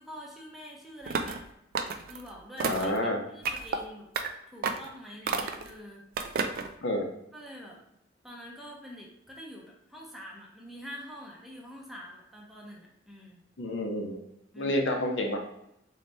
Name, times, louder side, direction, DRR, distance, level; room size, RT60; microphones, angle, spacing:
voice 1, 0.0-1.4 2.1-4.1 4.5-6.1 7.3-7.8 8.2-13.4 14.5-14.8, equal, ahead, -3 dB, 0.7 m, -46 dB
sound 1, 1.1-1.4 1.7-2.2 2.6-3.0 3.4-3.8 4.1-4.3 4.6-4.9 5.3-5.7 6.2-6.7, right 5 dB, 50° right, 0.3 m, -31 dB
voice 2, 2.6-3.2 6.8-7.1 13.6-14.2 14.6-15.4, left 1 dB, 70° left, 2 dB, 0.7 m, -29 dB
4.0 x 2.8 x 3.3 m, 0.81 s
head